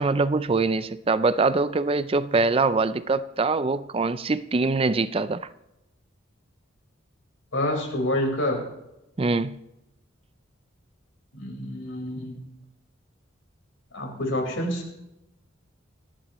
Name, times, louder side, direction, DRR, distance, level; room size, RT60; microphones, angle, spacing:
voice 1, 0.0-5.4 9.2-9.6, right 3 dB, 30° right, 0.4 m, -23 dB
voice 2, 7.5-8.6 11.3-12.4 13.9-14.8, left 1 dB, 80° left, 4.7 m, -27 dB
28.0 x 10.5 x 3.1 m
head